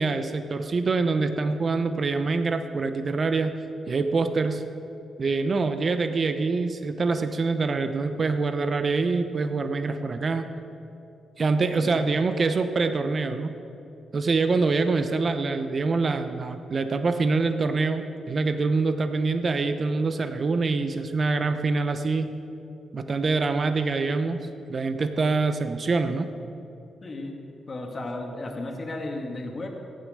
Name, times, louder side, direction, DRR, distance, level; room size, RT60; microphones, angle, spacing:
voice 1, 0.0-4.6 5.2-10.5 11.4-13.5 14.1-22.4 22.9-24.4 24.7-26.3, right 3 dB, 50° right, 8 dB, 0.9 m, -25 dB
voice 2, 11.5-12.1 27.0-27.3 27.7-29.7, left 2 dB, 45° left, 1 dB, 2.3 m, -34 dB
15.5 x 9.3 x 6.7 m, 2.7 s
supercardioid pair, 50°, 0 cm